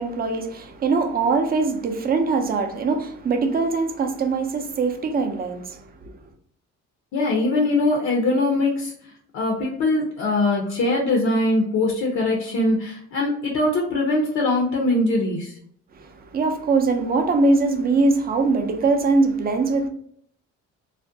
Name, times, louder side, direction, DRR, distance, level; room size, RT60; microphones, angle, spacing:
voice 1, 0.0-6.2 15.9-19.9, right 3 dB, 30° right, 0.4 m, -22 dB
voice 2, 7.1-8.9 9.3-15.5, left 2 dB, 65° left, 0.6 m, -22 dB
2.4 x 2.1 x 2.6 m
cardioid pair, 90°, 30 cm